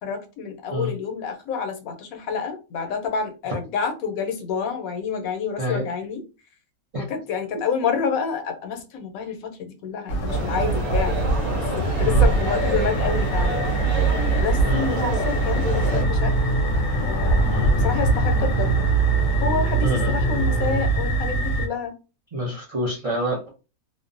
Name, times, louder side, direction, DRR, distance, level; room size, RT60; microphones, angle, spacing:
voice 1, 0.0-6.2 7.0-11.3 11.8-13.6 14.3-16.3 17.0-17.5 17.8-18.9 19.4-22.0, left 6 dB, 90° left, 6 dB, 1.1 m, -28 dB
voice 2, 5.6-5.9 6.9-7.0 12.0-12.3 14.6-15.1 17.5-17.7 19.8-20.1 22.3-23.5, equal, 55° right, -1 dB, 0.3 m, -27 dB
sound 1, 10.1-21.7, right 3 dB, 70° left, 1.0 m, -22 dB
sound 2, 10.3-16.0, equal, 35° right, 0.8 m, -29 dB
sound 3, 14.5-20.9, right 2 dB, 70° right, 0.9 m, -36 dB
2.6 x 2.0 x 2.5 m, 0.31 s
omnidirectional pair, 1.4 m